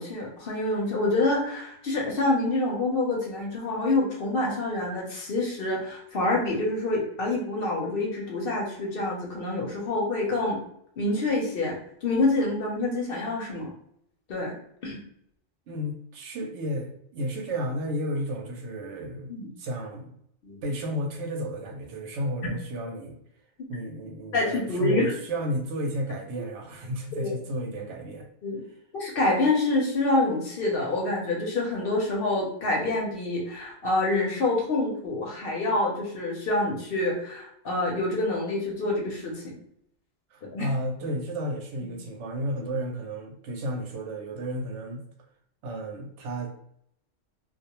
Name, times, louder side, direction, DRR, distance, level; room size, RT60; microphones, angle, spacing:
voice 1, 0.0-10.6 11.0-11.8 12.0-13.7 14.3-14.5 14.8-15.0 19.3-19.5 20.4-20.6 24.3-25.1 27.2-27.3 28.4-28.6 28.9-39.6 40.4-40.7, left 2 dB, 60° left, -1 dB, 0.7 m, -27 dB
voice 2, 15.7-19.3 19.6-20.1 20.6-23.2 23.7-28.3 40.3-45.0 45.6-46.5, equal, 75° right, 2 dB, 0.9 m, -32 dB
2.3 x 2.1 x 2.8 m, 0.71 s
omnidirectional pair, 1.2 m